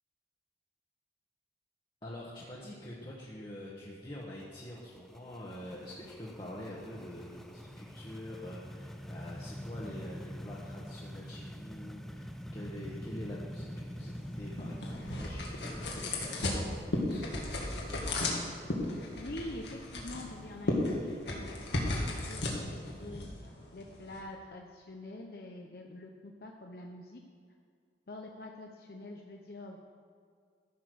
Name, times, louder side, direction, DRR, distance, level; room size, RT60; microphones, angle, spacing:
voice 1, 2.0-17.8, left 1 dB, 30° left, -6 dB, 1.3 m, -46 dB
sound 1, 4.2-23.0, equal, ahead, 0.4 m, -46 dB
sound 2, 14.0-24.2, left 1 dB, 85° left, 2.0 m, -35 dB
voice 2, 19.1-23.3 23.7-27.2 28.1-29.8, left 1 dB, 60° left, 1 dB, 0.7 m, -45 dB
14.0 x 6.1 x 6.2 m, 2.1 s
head